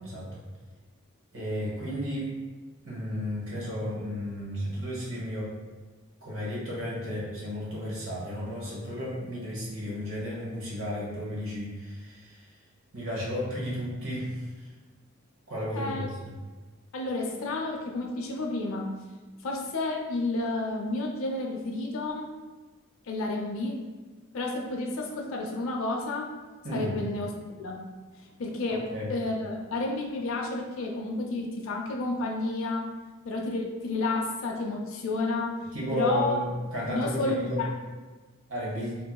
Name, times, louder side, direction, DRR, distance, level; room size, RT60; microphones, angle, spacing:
voice 1, 0.0-0.4 1.3-2.3 2.8-5.5 6.2-12.5 12.9-14.4 15.5-16.3 26.6-26.9 28.7-29.1 35.7-37.6 38.5-39.0, equal, 75° right, -5 dB, 1.0 m, -33 dB
voice 2, 15.7-16.1 16.9-18.9 19.4-22.3 23.1-23.8 24.3-26.3 26.7-27.3 27.6-27.8 28.2-28.8 29.1-32.9 33.2-35.6 35.9-36.4 36.9-37.7, left 2 dB, 70° left, 1 dB, 0.4 m, -31 dB
3.0 x 2.6 x 2.2 m, 1.3 s
head